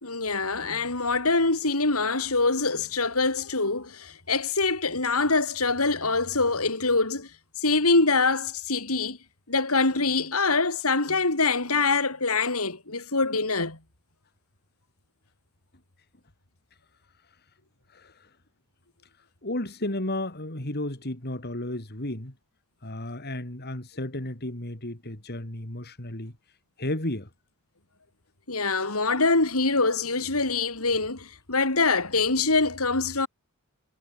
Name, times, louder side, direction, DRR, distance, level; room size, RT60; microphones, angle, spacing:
voice 1, 0.0-7.3 7.6-9.2 9.5-13.8 28.5-33.3, left 3 dB, 80° left, 4.4 m, -24 dB
voice 2, 17.9-18.3 19.4-22.3 22.8-26.4 26.8-27.3, left 1 dB, 45° left, 3.6 m, -33 dB
head